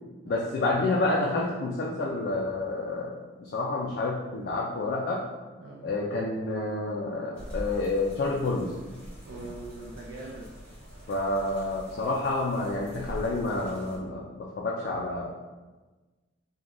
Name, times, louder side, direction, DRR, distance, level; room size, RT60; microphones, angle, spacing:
voice 1, 0.3-5.2 5.8-8.7 11.1-15.3, left 2 dB, 55° left, -3 dB, 0.3 m, -29 dB
voice 2, 5.6-5.9 9.3-10.5, right 2 dB, 70° right, -2 dB, 0.4 m, -42 dB
sound 1, 7.3-14.0, equal, 5° left, 1.0 m, -43 dB
3.3 x 2.2 x 2.5 m, 1.2 s
head